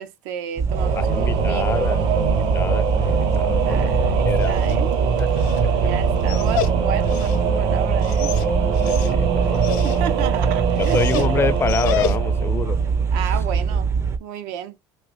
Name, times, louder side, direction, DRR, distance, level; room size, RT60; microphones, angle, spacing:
voice 1, 0.0-2.3 3.6-4.9 5.8-8.3 9.8-11.3 13.1-14.8, right 10 dB, 80° right, 0.5 m, -32 dB
sound 1, 0.6-14.2, right 5 dB, 30° right, 0.4 m, -23 dB
Singing / Musical instrument, 0.7-13.2, right 6 dB, 55° right, 0.8 m, -24 dB
voice 2, 1.0-3.9 4.2-4.6 5.2-5.9 8.8-9.9 10.8-12.8, left 5 dB, 25° left, 0.4 m, -27 dB
Dog, 4.2-12.5, left 8 dB, 85° left, 0.5 m, -32 dB
3.1 x 2.4 x 2.8 m
supercardioid pair, 100°, 9 cm